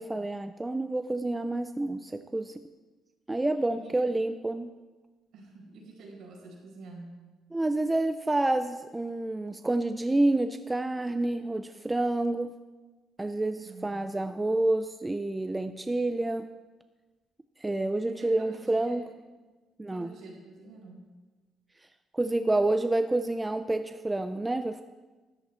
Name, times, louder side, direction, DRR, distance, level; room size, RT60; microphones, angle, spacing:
voice 1, 0.0-2.6 3.3-4.7 7.5-12.5 13.2-16.5 17.6-19.0 19.8-20.1 22.1-24.8, right 2 dB, 10° right, 9 dB, 0.3 m, -28 dB
voice 2, 3.7-4.1 5.3-7.2 13.6-14.1 18.1-19.1 19.9-21.0, right 3 dB, 60° right, -2 dB, 4.6 m, -48 dB
13.5 x 11.5 x 4.4 m, 1.2 s
cardioid pair, 175°, 0 cm